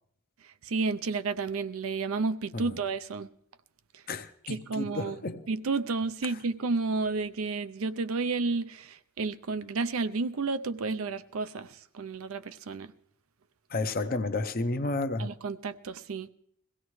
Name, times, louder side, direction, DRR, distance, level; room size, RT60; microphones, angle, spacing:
voice 1, 0.6-3.3 4.5-5.2 5.5-12.9 15.2-16.3, right 4 dB, 75° right, 0.6 m, -31 dB
voice 2, 4.1-5.5 6.3-6.4 13.7-15.3, left 2 dB, 45° left, 0.7 m, -32 dB
22.0 x 16.5 x 3.2 m
head